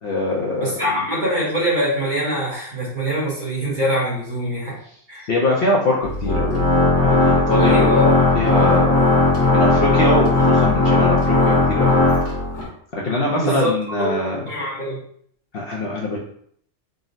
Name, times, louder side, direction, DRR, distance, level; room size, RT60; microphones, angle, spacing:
voice 1, 0.0-0.7 5.3-6.6 7.0-9.1 9.5-12.0 12.9-14.4 15.5-16.2, left 2 dB, 60° left, -3 dB, 0.6 m, -23 dB
voice 2, 0.6-4.8 5.1-5.3 7.6-8.1 13.3-13.7 14.0-14.2 14.5-15.0, equal, 45° right, -5 dB, 0.9 m, -23 dB
Organ, 6.0-12.7, left 2 dB, 85° left, 1.4 m, -17 dB
3.7 x 2.0 x 2.5 m, 0.64 s
omnidirectional pair, 1.3 m